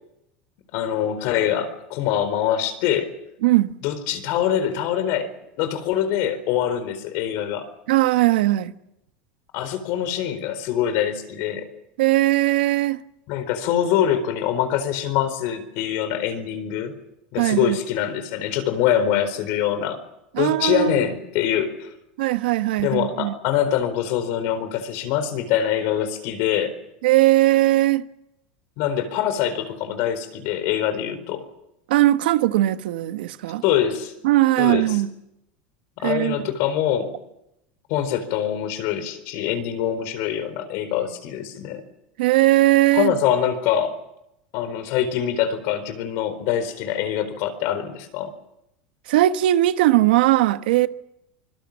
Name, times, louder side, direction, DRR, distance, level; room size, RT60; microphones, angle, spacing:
voice 1, 0.7-3.1 3.8-5.3 5.6-7.7 9.5-11.7 13.3-17.0 17.3-20.0 20.4-21.9 22.8-26.8 28.8-31.5 33.6-34.1 34.6-35.0 36.0-37.2 37.9-41.8 42.9-43.9 44.5-48.3, left 10 dB, 60° left, 4.3 m, -24 dB
voice 2, 3.4-3.8 7.9-8.7 12.0-13.0 17.4-17.8 20.3-21.0 22.2-23.3 27.0-28.1 31.9-33.6 34.2-35.1 36.0-36.4 42.2-43.1 49.1-50.9, right 16 dB, 80° right, 1.2 m, -19 dB
25.0 x 22.0 x 7.4 m
supercardioid pair, 120°, 5 cm